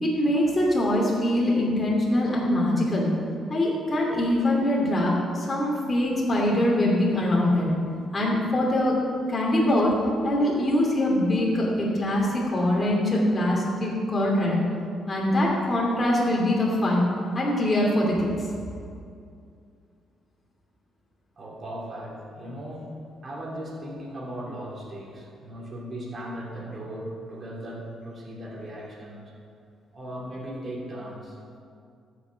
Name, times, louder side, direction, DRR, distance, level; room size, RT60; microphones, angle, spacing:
voice 1, 0.0-3.1 3.5-7.7 8.1-8.9 9.3-9.9 10.2-14.6 15.1-17.1 17.3-18.3, left 1 dB, 25° left, -4 dB, 2.7 m, -23 dB
voice 2, 21.4-22.9 23.2-29.3 29.9-31.6, right 1 dB, 40° right, -3 dB, 3.3 m, -37 dB
14.5 x 6.8 x 5.2 m, 2.4 s
cardioid pair, 90°, 0 cm